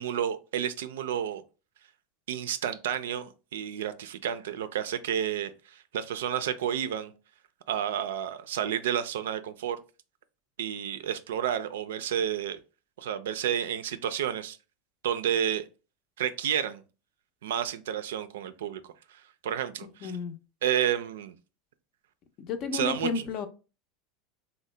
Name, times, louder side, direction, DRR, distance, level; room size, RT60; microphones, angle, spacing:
voice 1, 0.0-1.4 2.3-7.1 7.7-9.8 10.6-12.6 13.0-14.6 15.0-15.6 16.2-16.8 17.4-18.8 19.1-20.2 20.6-21.3 22.7-23.3, right 9 dB, 85° right, 0.3 m, -31 dB
voice 2, 20.0-20.4 22.4-23.5, left 4 dB, 50° left, 0.5 m, -32 dB
2.8 x 2.1 x 3.1 m
supercardioid pair, 110°, 0 cm